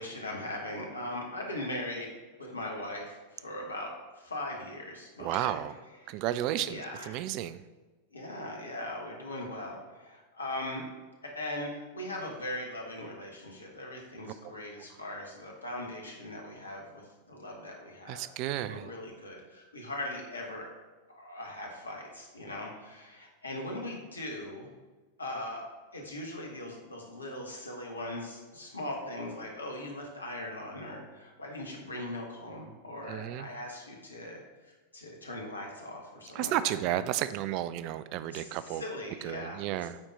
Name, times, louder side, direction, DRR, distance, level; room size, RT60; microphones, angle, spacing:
voice 1, 0.0-2.1 2.4-5.6 6.0-6.1 6.5-7.2 8.1-10.9 11.2-18.2 18.6-20.7 21.1-24.7 25.2-25.7 25.9-34.4 34.9-37.0 38.3-39.7, left 1 dB, 80° left, 0 dB, 1.4 m, -40 dB
voice 2, 5.2-5.7 6.1-7.6 18.1-18.9 33.1-33.5 36.3-38.8 39.2-40.0, right 12 dB, 40° right, 14 dB, 0.3 m, -32 dB
8.8 x 4.2 x 3.7 m, 1.3 s
figure-of-eight pair, 90°, 0 cm